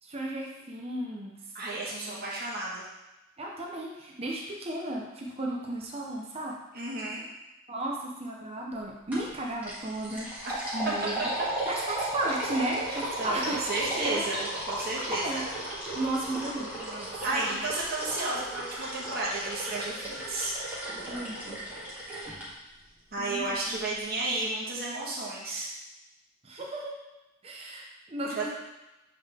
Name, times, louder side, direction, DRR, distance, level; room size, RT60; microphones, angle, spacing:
voice 1, 0.0-1.4 1.9-2.3 3.4-6.6 7.7-10.3 10.7-11.3 11.7-14.3 15.1-15.5 15.9-17.6 21.1-21.6 23.2-23.8 26.4-27.0 27.4-28.5, right 1 dB, 30° right, -2 dB, 0.7 m, -34 dB
voice 2, 1.5-2.8 6.7-7.2 10.4-10.7 12.9-15.4 17.2-20.5 23.1-25.7 28.2-28.4, right 2 dB, 50° right, -5 dB, 1.5 m, -33 dB
sound 1, 9.1-9.3 9.6-22.5, right 1 dB, 10° right, 1.7 m, -35 dB
7.6 x 3.8 x 3.6 m, 1.0 s
head